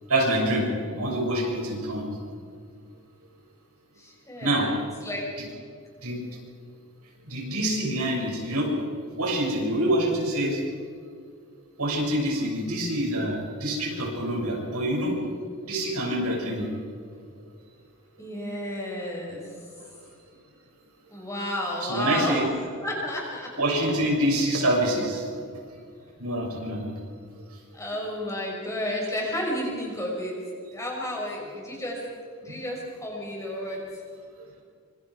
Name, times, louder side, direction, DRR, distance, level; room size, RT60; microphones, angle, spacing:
voice 1, 0.1-0.7 1.0-2.1 4.4-4.7 5.4-5.5 6.0-6.2 7.2-8.7 9.1-10.6 11.8-15.2 15.7-16.7 21.8-22.5 23.6-25.2 26.2-26.9, right 1 dB, 80° right, -1 dB, 6.6 m, -26 dB
voice 2, 0.7-1.3 4.0-4.7 5.0-5.2 16.3-16.6 18.2-19.4 21.1-22.4 22.8-23.5 27.7-30.4 30.7-32.0 32.4-33.8, left 1 dB, 15° left, -2 dB, 5.9 m, -32 dB
26.0 x 25.5 x 4.8 m, 2.2 s
head